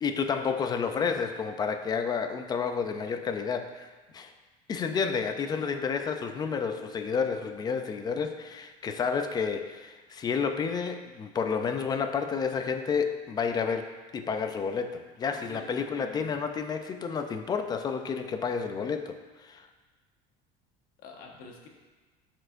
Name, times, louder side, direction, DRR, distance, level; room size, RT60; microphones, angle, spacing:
voice 1, 0.0-4.3 4.7-19.7, left 6 dB, 25° left, 7 dB, 0.4 m, -30 dB
voice 2, 15.2-16.3 21.0-21.7, left 4 dB, 55° left, 1 dB, 1.2 m, -46 dB
12.0 x 4.4 x 2.5 m, 1.3 s
cardioid pair, 155°, 17 cm